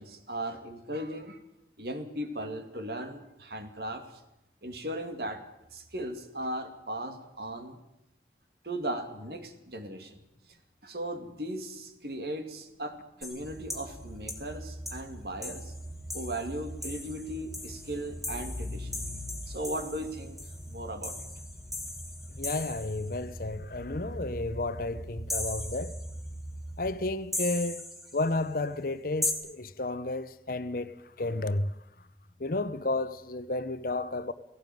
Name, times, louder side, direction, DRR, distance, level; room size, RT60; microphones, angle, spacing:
voice 1, 0.0-1.4 1.8-4.2 4.6-5.4 5.7-7.8 8.6-10.2 10.8-15.7 16.1-20.4 20.7-21.2, right 1 dB, 60° right, 2.5 m, -37 dB
sound 1, 13.2-14.0 14.3-14.5 14.9-15.0 15.4-23.2 25.3-26.3 27.3-28.4 29.2-29.3, left 2 dB, ahead, 2.7 m, -38 dB
sound 2, 13.4-27.1, equal, 20° right, 2.2 m, -42 dB
voice 2, 22.4-25.9 26.8-27.8 28.1-31.7 32.4-34.3, left 2 dB, 50° left, 0.9 m, -32 dB
17.5 x 16.5 x 9.4 m
head